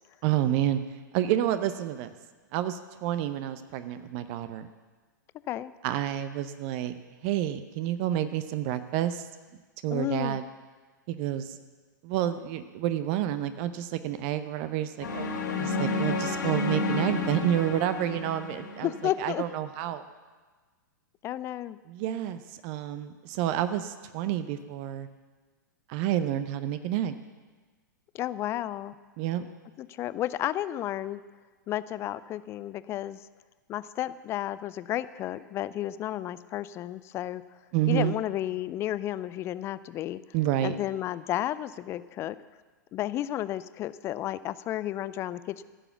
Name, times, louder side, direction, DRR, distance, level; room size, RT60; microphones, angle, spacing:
voice 1, 0.2-0.8 1.1-2.1 2.5-4.7 5.8-7.0 7.2-9.3 9.8-10.5 11.1-11.6 12.0-15.3 15.6-18.9 19.2-20.0 21.9-25.1 25.9-27.2 29.2-29.5 37.7-38.2 40.3-40.8, right 12 dB, 40° right, 11 dB, 0.7 m, -29 dB
voice 2, 9.9-10.4 18.8-19.4 21.2-21.8 28.1-28.9 29.8-31.2 31.7-33.2 33.7-37.4 37.9-40.2 40.6-42.4 42.9-45.6, left 13 dB, 25° left, 16 dB, 0.4 m, -32 dB
sound 1, 15.0-19.2, left 3 dB, 65° left, 2.5 m, -31 dB
15.0 x 7.0 x 7.0 m, 1.4 s
figure-of-eight pair, 105°, 11 cm